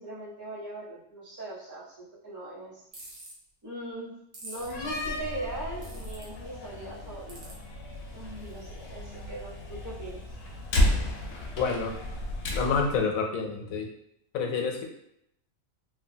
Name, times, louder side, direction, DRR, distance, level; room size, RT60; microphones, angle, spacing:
voice 1, 0.0-2.8 3.6-4.1 4.4-7.5 8.1-10.3, right 1 dB, 15° right, -11 dB, 0.8 m, -40 dB
sound 1, 2.9-3.3 4.3-4.7 5.8-6.2 7.3-7.5, right 2 dB, 80° right, 1.3 m, -43 dB
Slam, 4.6-13.0, left 1 dB, 60° left, 0.7 m, -33 dB
voice 2, 11.6-12.0 12.5-13.9 14.3-14.8, left 5 dB, 85° left, 2 dB, 1.1 m, -28 dB
3.2 x 2.4 x 2.7 m, 0.75 s
omnidirectional pair, 1.4 m